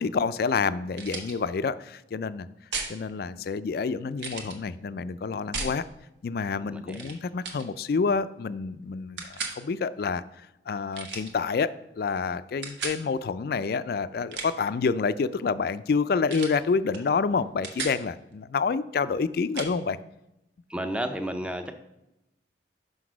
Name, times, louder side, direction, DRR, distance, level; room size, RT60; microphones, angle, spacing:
voice 1, 0.0-2.5 2.9-5.8 6.2-10.2 10.7-20.0, left 5 dB, 55° left, 15 dB, 0.3 m, -28 dB
sound 1, 1.0-1.3 2.7-3.0 4.2-4.6 5.5-5.8 6.9-7.2 7.4-7.7 9.2-9.6 10.9-11.3 12.6-13.0 14.1-14.7 16.3-16.6 16.9-17.1 17.4-18.0 19.6-19.7, right 4 dB, 75° right, 1.1 m, -35 dB
voice 2, 6.6-7.1 20.7-21.7, equal, 5° right, 7 dB, 0.5 m, -32 dB
5.9 x 5.2 x 6.1 m, 0.91 s
head